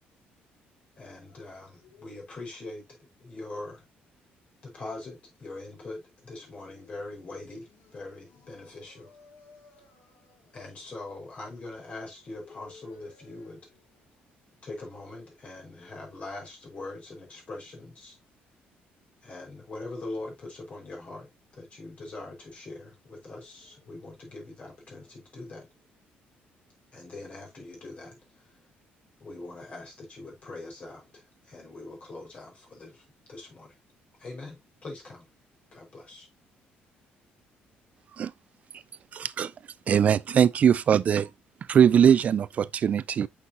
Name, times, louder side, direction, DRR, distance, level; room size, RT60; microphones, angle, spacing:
voice 1, 1.0-2.8 3.2-3.8 4.6-9.1 10.5-13.6 14.6-18.2 19.2-25.7 26.9-28.5 29.2-33.7 34.2-35.3 35.7-36.3, left 2 dB, 35° left, 5.2 m, -42 dB
voice 2, 8.5-10.4 12.5-13.5, left 4 dB, 85° left, 3.5 m, -55 dB
voice 3, 39.1-39.5 39.9-41.3 41.7-43.3, right 8 dB, 40° right, 0.4 m, -21 dB
8.5 x 5.6 x 2.8 m
cardioid pair, 145°, 4 cm